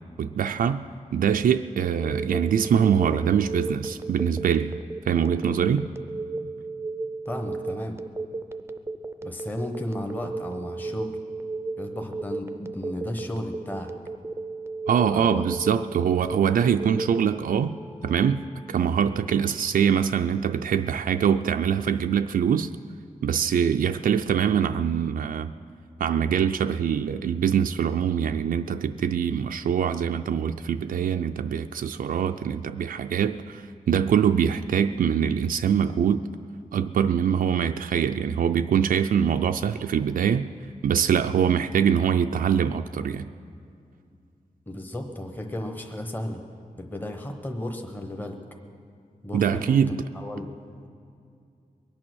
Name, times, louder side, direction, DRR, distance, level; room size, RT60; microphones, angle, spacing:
voice 1, 0.2-0.9 1.1-4.8 5.1-5.9 14.9-17.8 18.0-22.7 23.2-25.5 26.0-36.3 36.7-40.5 40.8-43.3 49.3-50.0, right 8 dB, 90° right, 7 dB, 0.4 m, -23 dB
Telephone, 2.0-17.2, right 3 dB, 20° right, 0.5 m, -34 dB
voice 2, 7.3-8.0 9.2-11.2 11.8-13.9 15.1-15.4 44.7-46.4 46.8-48.4 49.2-50.5, left 1 dB, 15° left, 4 dB, 0.9 m, -34 dB
sound 1, 17.0-21.8, left 3 dB, 40° left, 1.3 m, -50 dB
22.5 x 8.8 x 6.3 m, 2.4 s
wide cardioid pair, 155°, 14 cm